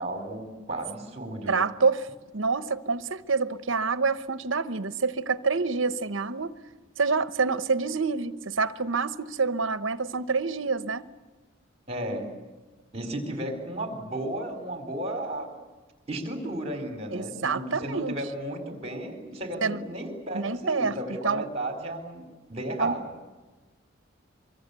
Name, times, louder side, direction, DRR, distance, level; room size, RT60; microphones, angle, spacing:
voice 1, 0.0-1.6 11.9-12.3 12.9-15.5 16.1-23.1, right 1 dB, 30° right, 4.3 m, -34 dB
voice 2, 1.5-2.1 2.3-6.5 7.0-11.0 17.1-18.2 19.6-19.8 20.3-21.0 21.2-21.4 22.8-23.0, right 4 dB, 70° right, 1.0 m, -27 dB
24.0 x 24.0 x 8.3 m
head